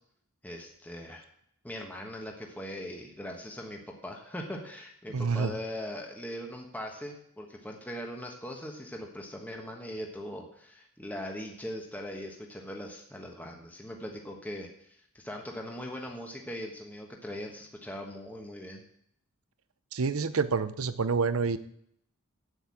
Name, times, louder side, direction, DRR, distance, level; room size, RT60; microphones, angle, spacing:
voice 1, 0.4-1.2 1.6-18.8, equal, 10° left, 1 dB, 1.3 m, -40 dB
voice 2, 5.1-5.5 19.9-21.6, right 5 dB, 90° right, 13 dB, 0.7 m, -28 dB
8.2 x 8.2 x 8.5 m, 0.70 s
head